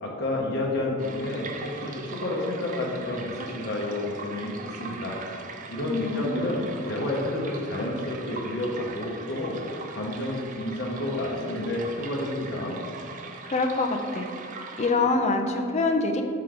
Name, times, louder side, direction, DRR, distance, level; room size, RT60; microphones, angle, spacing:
voice 1, 0.0-5.2 5.7-9.6 9.9-12.8, left 1 dB, 50° left, -3 dB, 0.8 m, -30 dB
sound 1, 1.0-15.3, right 4 dB, 35° right, 0.4 m, -41 dB
voice 2, 5.8-6.6 13.5-14.3 14.8-16.2, left 3 dB, 30° left, 4 dB, 0.4 m, -25 dB
5.6 x 3.8 x 4.9 m, 2.4 s
head